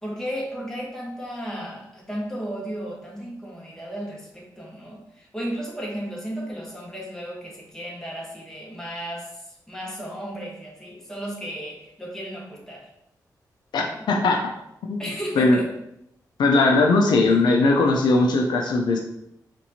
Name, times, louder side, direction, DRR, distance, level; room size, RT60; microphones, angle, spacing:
voice 1, 0.0-12.9 13.8-14.1 15.0-15.7 17.3-17.4, equal, 5° left, -3 dB, 1.2 m, -34 dB
voice 2, 13.7-14.4 14.8-15.0 15.4-15.6 16.4-19.0, left 3 dB, 85° left, 2 dB, 0.4 m, -19 dB
4.1 x 2.6 x 2.8 m, 0.80 s
cardioid pair, 65°, 7 cm